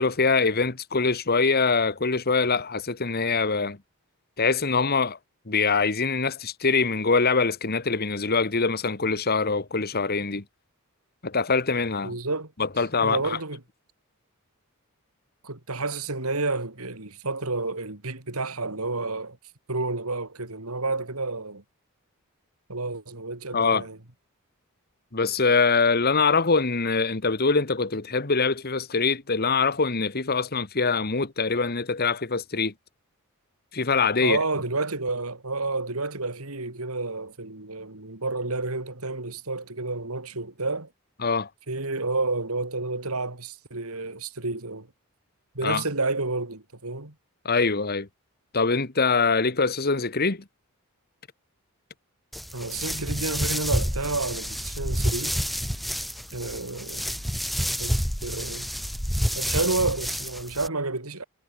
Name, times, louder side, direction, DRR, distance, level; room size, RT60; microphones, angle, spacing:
voice 1, 0.0-3.8 4.4-5.2 5.5-10.4 11.2-12.2 12.6-13.4 23.5-23.8 25.1-32.7 33.7-34.4 41.2-41.5 45.6-45.8 47.4-48.1 48.5-50.4, left 4 dB, 45° left, 1.5 m, -24 dB
voice 2, 12.0-12.5 13.0-13.6 15.4-19.4 19.7-21.6 22.7-24.0 34.2-40.9 41.7-44.9 45.6-47.1 52.5-55.4 56.3-57.1 57.8-58.7 59.3-61.2, right 3 dB, 80° right, 3.4 m, -30 dB
sound 1, 52.3-60.7, equal, ahead, 1.6 m, -29 dB
head